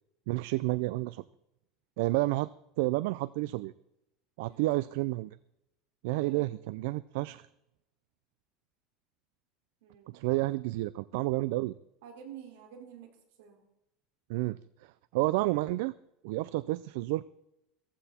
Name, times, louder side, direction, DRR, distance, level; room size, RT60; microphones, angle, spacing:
voice 1, 0.3-1.2 2.0-2.5 2.8-3.7 4.4-5.4 6.0-7.4 10.1-11.8 14.3-15.9 16.2-17.2, right 19 dB, 75° right, 18 dB, 0.4 m, -30 dB
voice 2, 4.4-4.8 6.2-6.5 9.8-10.4 12.0-13.1 13.4-13.6, right 8 dB, 90° right, 2 dB, 4.7 m, -49 dB
16.5 x 15.0 x 4.4 m, 0.85 s
cardioid pair, 155°, 0 cm